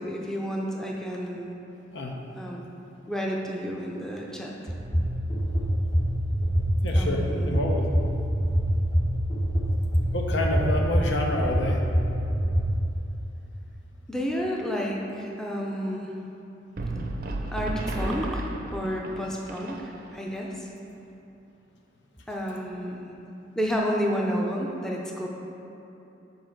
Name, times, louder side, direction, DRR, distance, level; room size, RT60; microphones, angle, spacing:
voice 1, 0.0-1.5 2.4-2.6 3.1-4.7 6.9-7.5 14.1-16.1 17.5-20.7 22.3-23.1 23.6-25.3, equal, 5° left, -2 dB, 0.5 m, -31 dB
sound 1, 4.7-12.6, equal, 45° left, 1.1 m, -24 dB
voice 2, 6.8-7.9 10.1-11.8, left 1 dB, 75° left, 1 dB, 0.8 m, -28 dB
sound 2, 16.8-20.3, right 1 dB, 55° right, 0.6 m, -33 dB
5.5 x 4.5 x 5.8 m, 3.0 s
head